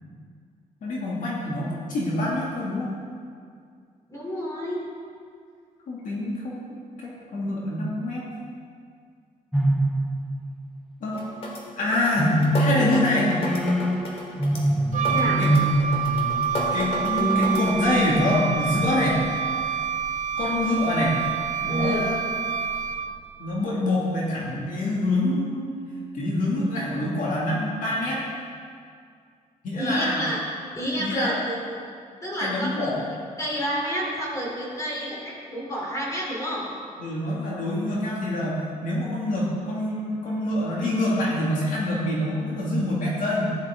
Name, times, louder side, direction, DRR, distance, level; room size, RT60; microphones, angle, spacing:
voice 1, 0.8-2.9 5.9-6.6 7.0-8.2 11.0-11.2 11.8-13.3 15.4-15.5 16.7-19.2 20.4-21.2 21.6-22.2 23.4-25.7 26.1-28.2 29.6-30.2 31.0-31.4 32.4-33.0 37.0-43.6, left 1 dB, 65° left, -5 dB, 2.6 m, -25 dB
voice 2, 4.1-4.8 15.0-15.5 19.1-19.2 21.7-22.1 29.7-30.4 30.7-31.8 32.2-33.0 33.4-36.6, equal, 20° left, -4 dB, 3.7 m, -29 dB
sound 1, 9.5-10.6 12.2-18.7, right 1 dB, ahead, 0.8 m, -25 dB
sound 2, 11.1-17.7, left 1 dB, 40° left, 2.5 m, -33 dB
Wind instrument woodwind instrument, 14.9-23.2, right 8 dB, 65° right, 0.6 m, -27 dB
15.0 x 11.0 x 3.9 m, 2.2 s
cardioid pair, 140°, 15 cm